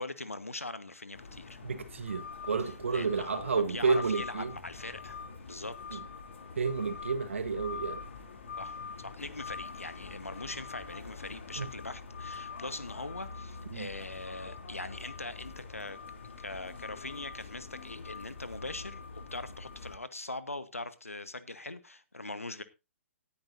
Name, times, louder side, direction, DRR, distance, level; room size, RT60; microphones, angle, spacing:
voice 1, 0.0-1.6 2.9-6.1 8.6-16.0 16.4-22.6, left 2 dB, 85° left, 1.2 m, -41 dB
sound 1, 1.1-19.9, left 5 dB, 60° left, 2.8 m, -44 dB
voice 2, 1.6-4.5 5.9-6.0 6.6-8.0 11.6-11.7 13.7-13.9, right 4 dB, 65° right, 1.4 m, -31 dB
18.0 x 10.0 x 2.6 m
figure-of-eight pair, 125°, 7 cm